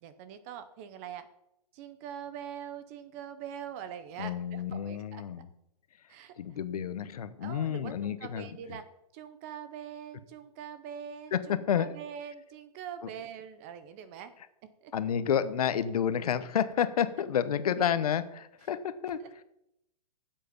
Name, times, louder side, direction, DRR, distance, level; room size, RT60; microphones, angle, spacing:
voice 1, 0.0-1.3 1.7-5.4 6.1-6.6 7.4-8.8 9.1-14.3 14.8-14.9 19.2-19.4, right 8 dB, 20° right, 11 dB, 0.5 m, -43 dB
voice 2, 4.2-5.5 6.4-8.5 11.3-11.9 14.9-19.2, left 8 dB, 65° left, 13 dB, 0.9 m, -30 dB
11.5 x 7.6 x 5.2 m, 0.82 s
hypercardioid pair, 170°, 20 cm